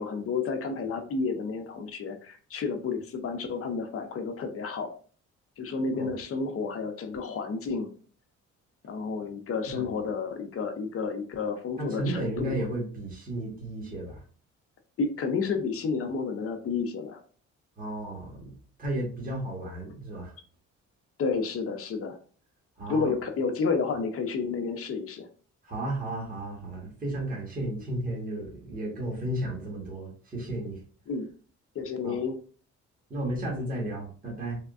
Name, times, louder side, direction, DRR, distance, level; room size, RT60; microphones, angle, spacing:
voice 1, 0.0-4.9 5.6-7.9 8.8-12.6 15.0-17.2 21.2-22.2 22.9-25.3 31.1-31.3 31.8-32.3, left 4 dB, 50° left, 6 dB, 0.6 m, -31 dB
voice 2, 11.8-14.2 17.8-20.3 22.8-23.1 25.6-30.8 32.0-32.2 33.1-34.6, right 1 dB, 30° right, -3 dB, 1.4 m, -33 dB
3.4 x 2.1 x 2.4 m, 0.42 s
cardioid pair, 90°, 30 cm